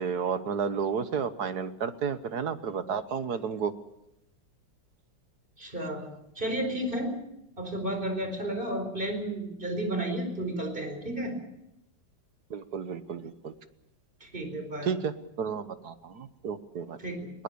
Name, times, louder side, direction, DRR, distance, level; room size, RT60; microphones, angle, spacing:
voice 1, 0.0-3.7 12.5-13.5 14.8-17.0, right 6 dB, 60° right, 11 dB, 1.6 m, -32 dB
voice 2, 5.6-6.1 6.3-7.2 7.6-11.3 14.2-14.9 17.0-17.3, right 1 dB, 25° right, 6 dB, 4.9 m, -32 dB
21.0 x 19.5 x 7.0 m, 0.84 s
omnidirectional pair, 2.0 m